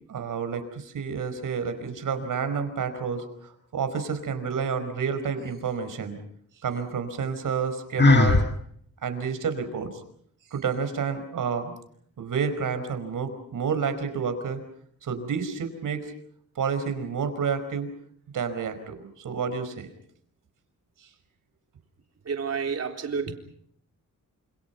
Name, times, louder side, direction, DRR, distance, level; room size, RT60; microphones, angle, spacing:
voice 1, 0.1-6.2 6.6-8.4 9.0-9.9 10.5-11.7 12.2-14.6 15.0-16.1 16.5-17.9 18.3-19.9, right 6 dB, 70° right, 9 dB, 5.0 m, -29 dB
Sigh, 8.0-8.5, left 3 dB, 30° left, 1.7 m, -17 dB
voice 2, 22.3-23.3, right 5 dB, 50° right, 4 dB, 3.9 m, -29 dB
28.5 x 27.5 x 5.9 m, 0.64 s
wide cardioid pair, 160°, 33 cm